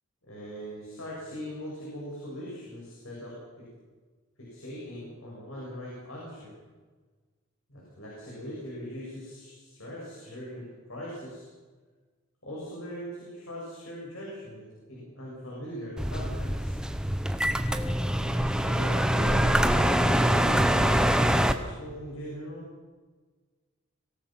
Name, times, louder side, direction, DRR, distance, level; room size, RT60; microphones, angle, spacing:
voice 1, 0.2-3.7 4.4-6.5 7.7-11.5 12.4-16.8 18.2-22.7, equal, 70° left, -5 dB, 7.8 m, -40 dB
sound 1, 16.0-21.5, equal, 5° right, 0.9 m, -24 dB
26.0 x 18.0 x 6.1 m, 1.4 s
head